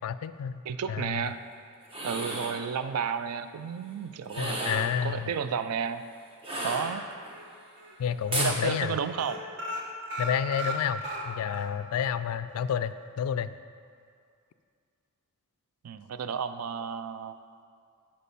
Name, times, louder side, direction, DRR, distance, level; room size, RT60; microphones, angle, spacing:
voice 1, 0.0-0.6 0.9-1.3 4.4-5.3 8.0-8.9 10.2-13.6, left 8 dB, 70° left, 15 dB, 0.3 m, -30 dB
voice 2, 0.7-1.4 2.0-6.0 6.6-7.0 8.4-9.4 15.8-17.4, right 7 dB, 75° right, 11 dB, 0.4 m, -32 dB
sound 1, 1.8-2.6 4.2-5.0 6.4-7.3 8.3-8.6, right 1 dB, 25° right, 1.0 m, -33 dB
sound 2, 6.8-7.4 7.8-8.0 8.2-8.4 8.7-11.7 12.0-12.1 12.5-12.6, equal, 55° right, 1.0 m, -37 dB
8.4 x 5.3 x 5.3 m, 2.3 s
head